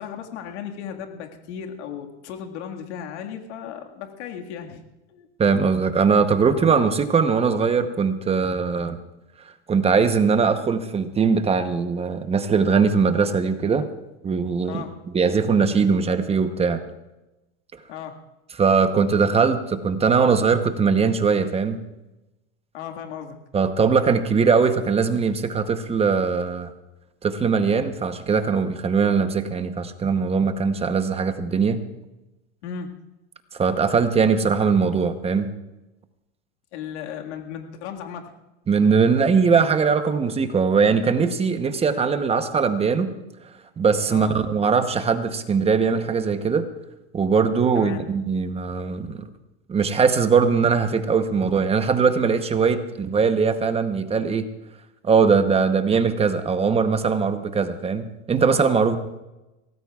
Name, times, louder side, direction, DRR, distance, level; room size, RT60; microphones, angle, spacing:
voice 1, 0.0-4.8 5.1-5.3 14.7-15.0 17.9-18.2 22.7-23.4 32.6-32.9 36.7-38.3 44.1-44.3 47.7-48.0, left 8 dB, 75° left, 2 dB, 2.0 m, -35 dB
voice 2, 5.4-9.0 9.7-13.9 14.2-14.8 15.1-16.8 18.6-21.8 23.5-26.7 27.2-31.8 33.5-35.5 38.7-43.1 43.8-46.7 47.1-49.3 49.7-54.5 55.0-59.0, right 5 dB, 15° right, 9 dB, 0.9 m, -21 dB
23.5 x 18.0 x 2.4 m, 0.99 s
supercardioid pair, 130°, 34 cm